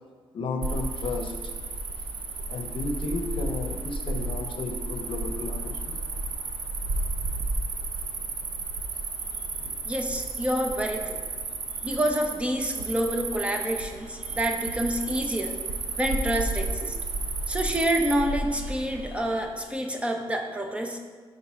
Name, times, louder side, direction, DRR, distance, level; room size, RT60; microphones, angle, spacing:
voice 1, 0.3-1.5 2.5-6.0, left 3 dB, 65° left, 5 dB, 0.7 m, -33 dB
Cricket, 0.6-19.5, right 3 dB, 85° right, 0.6 m, -32 dB
voice 2, 9.9-11.2 11.8-15.6 16.0-17.0 17.5-21.0, equal, 10° right, 3 dB, 0.6 m, -28 dB
5.3 x 3.9 x 5.9 m, 1.5 s
cardioid pair, 105°, 10 cm